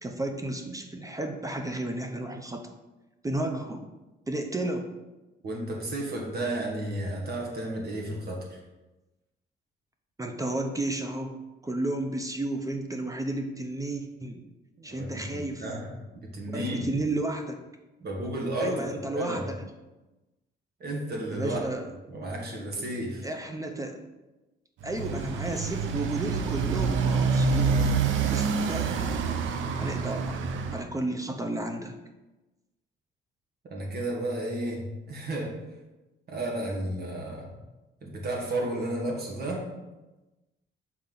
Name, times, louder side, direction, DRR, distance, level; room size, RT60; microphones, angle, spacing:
voice 1, 0.0-2.6 3.2-3.8 4.3-4.9 10.2-11.3 11.6-14.4 14.8-15.7 16.5-17.6 18.6-19.6 21.3-21.9 23.2-24.0 24.8-29.1 29.8-30.2 30.7-31.9, right 2 dB, 15° right, 4 dB, 0.6 m, -32 dB
voice 2, 5.4-8.6 14.8-17.0 18.0-18.8 19.1-19.5 20.8-21.6 22.1-23.3 33.7-35.5 36.3-37.5 38.0-39.7, right 1 dB, 55° right, -1 dB, 1.6 m, -32 dB
Motorcycle, 24.8-30.8, right 5 dB, 75° right, 0.6 m, -27 dB
5.6 x 4.3 x 3.9 m, 1.1 s
cardioid pair, 90°, 20 cm